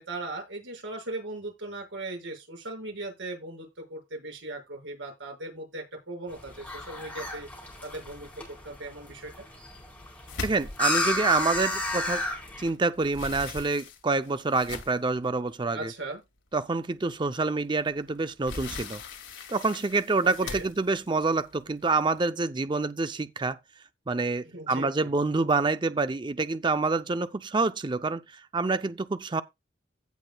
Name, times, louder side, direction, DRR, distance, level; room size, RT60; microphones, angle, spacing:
voice 1, 0.0-7.5 7.8-9.5 15.7-16.2 20.2-20.7 24.5-25.1, right 2 dB, 85° right, 5.9 m, -38 dB
sound 1, 6.3-12.7, left 2 dB, 10° left, 4.2 m, -33 dB
sound 2, 10.3-12.5 12.8-15.2 15.8-15.9 16.4-16.5 17.9-22.2, left 3 dB, 85° left, 2.1 m, -40 dB
voice 2, 10.4-12.2 12.6-15.9 16.5-19.0 19.5-23.6 24.1-28.2 28.5-29.4, right 3 dB, 25° right, 0.5 m, -27 dB
16.5 x 6.2 x 2.3 m
head